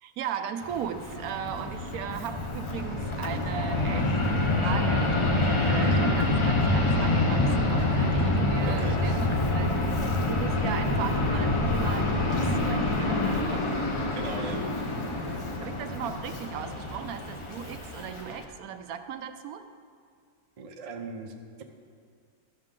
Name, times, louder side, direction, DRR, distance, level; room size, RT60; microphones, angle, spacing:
voice 1, 0.0-9.9 10.3-13.7 15.6-19.7, right 8 dB, 80° right, 8 dB, 1.0 m, -37 dB
Fixed-wing aircraft airplane, 0.6-18.4, left 2 dB, 50° left, 0.3 m, -27 dB
sound 1, 2.1-17.8, equal, 75° left, 1.7 m, -48 dB
voice 2, 8.6-9.3 14.1-14.7 20.6-21.6, right 3 dB, 55° right, 3 dB, 0.4 m, -39 dB
12.5 x 6.6 x 3.7 m, 2.2 s
omnidirectional pair, 1.6 m